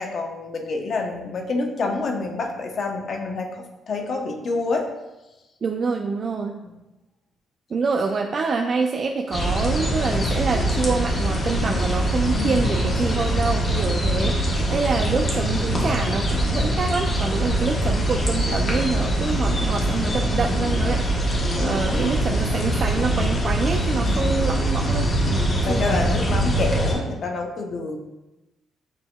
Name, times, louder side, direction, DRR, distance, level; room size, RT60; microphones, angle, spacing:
voice 1, 0.0-3.5 3.9-4.9 6.6-6.7 12.3-12.8 24.1-24.5 25.6-28.0, left 3 dB, 55° left, 2 dB, 0.7 m, -28 dB
voice 2, 5.6-6.6 7.7-21.0 21.6-26.1, right 4 dB, 45° right, 2 dB, 0.3 m, -26 dB
sound 1, 9.3-26.9, right 1 dB, 35° left, 1.1 m, -23 dB
7.3 x 2.7 x 2.2 m, 1.0 s
cardioid pair, 90°, 0 cm